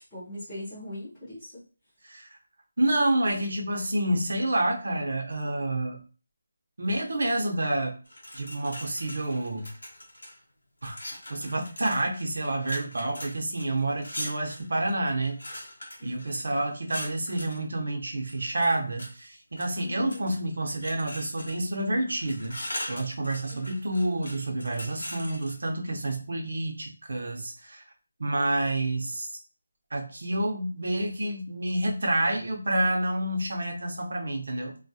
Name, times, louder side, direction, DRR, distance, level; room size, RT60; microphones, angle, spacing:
voice 1, 0.1-1.6 16.0-16.3 19.8-20.3 23.4-23.7, left 1 dB, ahead, -19 dB, 0.6 m, -40 dB
voice 2, 2.8-6.0 6.8-8.0 8.3-9.7 10.8-11.0 11.3-15.4 16.0-22.6 22.9-27.8 28.2-29.4 29.9-34.8, right 1 dB, 55° right, 1 dB, 0.6 m, -28 dB
sound 1, 8.1-10.4 10.8-17.6 18.3-19.1 19.6-20.4 20.8-21.7 22.1-25.5, left 1 dB, 85° left, 0.8 m, -41 dB
2.3 x 2.1 x 2.7 m, 0.36 s
figure-of-eight pair, 180°, 0 cm